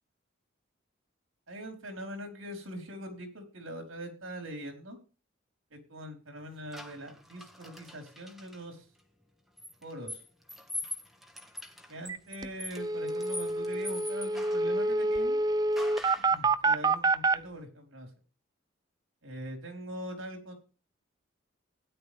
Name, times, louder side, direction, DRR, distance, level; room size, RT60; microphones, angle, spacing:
voice 1, 1.5-5.0 5.7-8.9 9.8-10.2 11.9-15.4 16.3-18.1 19.2-20.5, equal, 85° right, 4 dB, 4.7 m, -42 dB
sound 1, 6.7-8.6 9.6-14.7 15.8-16.4, left 1 dB, ahead, 1.6 m, -43 dB
sound 2, 12.1-12.2 12.4-12.5 12.8-17.4, right 3 dB, 20° right, 0.5 m, -27 dB
16.5 x 11.0 x 3.5 m, 0.35 s
head